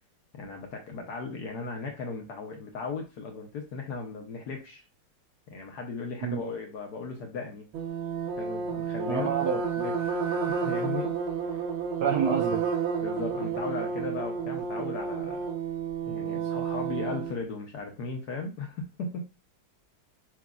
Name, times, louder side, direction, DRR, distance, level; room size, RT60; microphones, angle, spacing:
voice 1, 0.3-4.8 5.5-7.7 8.4-9.3 9.8-9.9 10.3-11.1 13.0-15.5 16.1-19.3, left 4 dB, 65° left, 2 dB, 1.1 m, -37 dB
sound 1, 7.7-17.4, right 6 dB, 85° right, 1.7 m, -31 dB
voice 2, 9.1-9.6 12.0-12.6, right 7 dB, 65° right, 1 dB, 1.0 m, -27 dB
5.9 x 2.8 x 2.3 m, 0.29 s
omnidirectional pair, 2.2 m